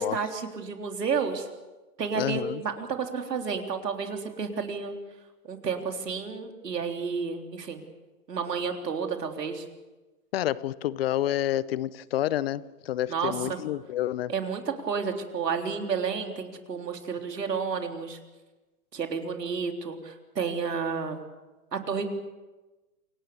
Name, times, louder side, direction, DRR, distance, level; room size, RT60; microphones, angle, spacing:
voice 1, 0.0-1.5 2.0-4.9 5.4-7.8 8.3-9.6 13.1-13.6 14.3-18.2 18.9-21.3 21.7-22.0, right 5 dB, 85° right, 3.7 m, -31 dB
voice 2, 2.2-2.6 10.3-14.3, left 13 dB, 40° left, 0.7 m, -29 dB
27.5 x 18.5 x 7.0 m
hypercardioid pair, 135°, 47 cm